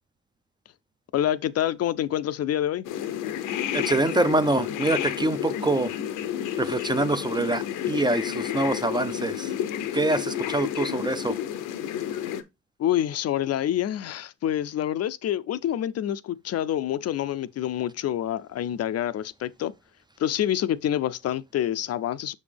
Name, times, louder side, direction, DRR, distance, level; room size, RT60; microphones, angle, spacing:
voice 1, 1.1-2.9 12.8-19.7 20.2-22.3, left 11 dB, 55° left, 0.5 m, -27 dB
sound 1, 2.8-12.4, left 10 dB, 90° left, 0.7 m, -31 dB
voice 2, 3.7-5.9 6.6-9.5 9.9-11.4, right 2 dB, 15° right, 0.4 m, -25 dB
6.5 x 5.2 x 3.4 m
cardioid pair, 90°, 30 cm